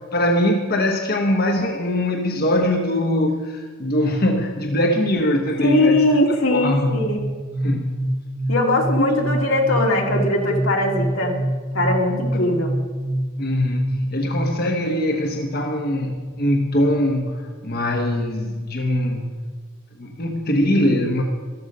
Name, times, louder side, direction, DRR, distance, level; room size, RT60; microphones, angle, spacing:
voice 1, 0.1-6.0 6.5-7.0 7.6-7.9 9.0-9.2 13.4-19.5 20.0-21.2, left 1 dB, 50° left, 3 dB, 1.1 m, -22 dB
voice 2, 5.6-7.2 8.5-11.4 11.7-12.7, left 1 dB, 80° left, 1 dB, 2.5 m, -20 dB
sound 1, 7.2-14.7, right 1 dB, 50° right, 1.3 m, -26 dB
14.0 x 13.0 x 5.3 m, 1.5 s
head